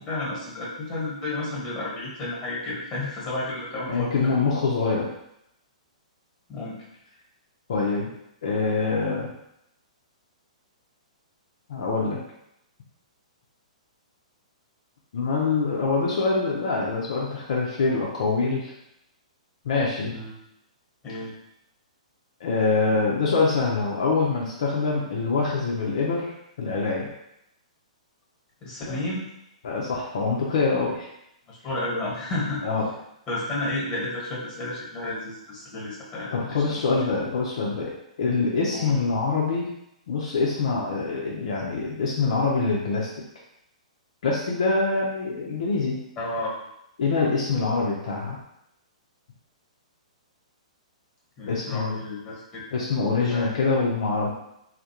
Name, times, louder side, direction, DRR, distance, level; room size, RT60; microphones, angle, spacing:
voice 1, 0.0-4.4 6.5-6.8 20.1-20.4 21.0-21.3 28.6-29.2 31.5-32.6 33.3-36.8 38.7-39.0 46.2-46.5 51.4-52.6 53.1-53.5, left 2 dB, 20° left, -5 dB, 1.1 m, -32 dB
voice 2, 3.9-5.1 7.7-8.1 8.4-9.3 11.7-12.2 15.1-18.7 19.6-20.2 22.4-26.3 26.6-27.1 28.9-29.1 29.6-31.1 32.6-32.9 36.3-37.9 38.2-39.7 40.1-43.1 44.2-46.0 47.0-48.4 51.5-52.0 52.7-54.3, left 4 dB, 60° left, -3 dB, 0.5 m, -25 dB
2.2 x 2.0 x 2.8 m, 0.80 s
figure-of-eight pair, 120°, 4 cm